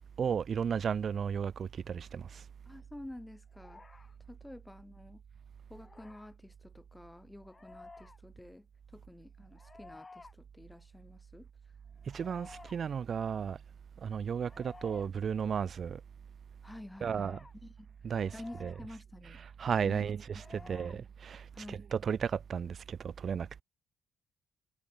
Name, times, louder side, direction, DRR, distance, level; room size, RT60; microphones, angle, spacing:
voice 1, 0.2-2.4 12.1-13.6 14.0-16.0 17.0-17.4 18.0-19.0 19.2-23.6, right 7 dB, 50° right, 1.0 m, -34 dB
voice 2, 2.6-3.8 4.3-5.2 5.7-8.7 8.9-11.5 16.6-17.3 17.6-17.9 18.3-19.4 19.8-21.0 21.5-21.9, left 1 dB, 10° left, 1.6 m, -50 dB
sound 1, 3.5-4.1 5.7-6.3 7.4-8.2 9.5-10.3 12.0-12.8 14.3-15.1 16.9-17.5 18.2-18.9 20.3-21.0, left 3 dB, 25° left, 3.0 m, -53 dB
cardioid pair, 90°, 0 cm